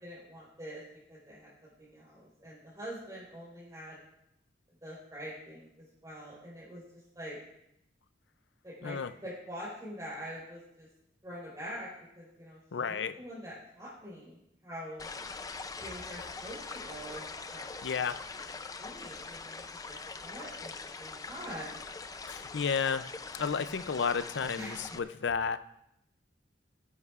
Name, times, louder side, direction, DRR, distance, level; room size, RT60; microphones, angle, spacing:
voice 1, 0.0-0.8 1.1-4.0 4.8-6.8 7.1-7.4 8.6-10.9 11.2-11.9 12.2-12.6 12.9-15.1 15.8-17.7 18.0-18.1 18.8-19.6 19.9-21.8 24.6-24.8, equal, 20° right, -8 dB, 4.1 m, -45 dB
voice 2, 12.7-13.2 17.8-18.2 22.3-23.0 23.3-25.6, left 6 dB, 70° left, 12 dB, 0.5 m, -32 dB
sound 1, 15.0-25.0, left 4 dB, 20° left, 0.4 m, -43 dB
16.5 x 11.0 x 2.4 m, 0.79 s
head